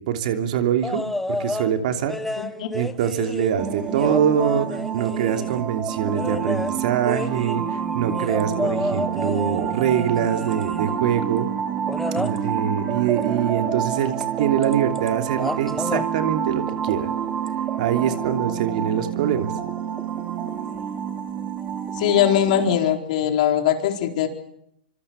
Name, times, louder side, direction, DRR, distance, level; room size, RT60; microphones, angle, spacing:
voice 1, 0.0-2.4 2.7-11.5 12.2-17.1 17.8-19.5, right 9 dB, 55° right, 6 dB, 3.0 m, -24 dB
sound 1, 0.8-1.7 2.1-5.6 6.1-11.0 11.9-12.4 14.2-14.3 14.6-15.1 15.3-16.1 17.5-17.6, left 2 dB, 5° left, 1.1 m, -30 dB
sound 2, 3.6-22.8, right 8 dB, 20° right, 2.5 m, -28 dB
voice 2, 22.0-24.3, left 10 dB, 50° left, 4 dB, 4.5 m, -20 dB
26.0 x 25.5 x 7.3 m, 0.79 s
hypercardioid pair, 145°, 5 cm